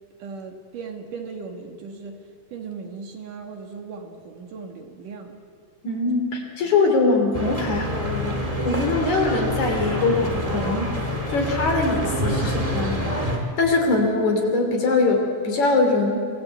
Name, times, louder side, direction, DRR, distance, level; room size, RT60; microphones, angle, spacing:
voice 1, 0.2-2.2 2.5-5.4 6.6-6.7, right 5 dB, 65° right, 3 dB, 3.2 m, -37 dB
voice 2, 5.8-10.9 11.3-16.3, left 3 dB, 55° left, 3 dB, 4.5 m, -22 dB
sound 1, 7.3-13.4, equal, 10° right, 2.2 m, -26 dB
25.0 x 20.5 x 8.4 m, 2.4 s
omnidirectional pair, 4.2 m